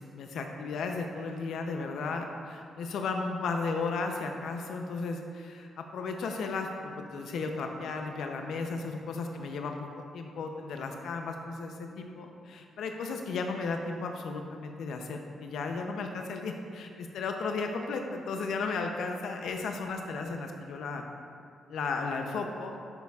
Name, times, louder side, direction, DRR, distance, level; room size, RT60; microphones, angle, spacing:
voice 1, 0.0-9.9 10.1-21.0 21.7-22.7, left 4 dB, 80° left, 3 dB, 0.6 m, -34 dB
10.5 x 6.9 x 2.4 m, 2.3 s
cardioid pair, 105°, 0 cm